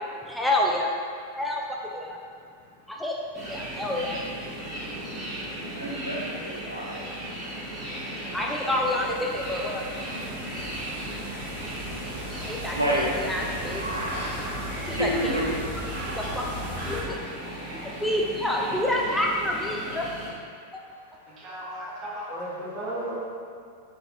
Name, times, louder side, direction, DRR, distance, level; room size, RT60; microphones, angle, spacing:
voice 1, 0.2-0.9 1.3-2.2 2.9-3.1 3.5-4.2 8.3-9.8 12.5-13.8 14.9-15.4 16.2-16.4 16.8-17.5 18.0-20.1 20.7-20.8, left 1 dB, 5° left, -2 dB, 0.3 m, -28 dB
sound 1, 3.3-20.3, right 1 dB, 10° right, 1.4 m, -37 dB
voice 2, 5.7-7.0 8.3-8.4 9.8-10.0 12.7-13.1 13.7-14.3 14.9-15.5 15.9-16.6 17.4-17.8, equal, 85° right, -4 dB, 0.6 m, -30 dB
sound 2, 8.8-17.0, right 1 dB, 55° right, 0.9 m, -37 dB
voice 3, 21.3-23.2, right 1 dB, 30° right, -6 dB, 1.1 m, -35 dB
4.1 x 4.1 x 2.6 m, 2.3 s
figure-of-eight pair, 90°, 0 cm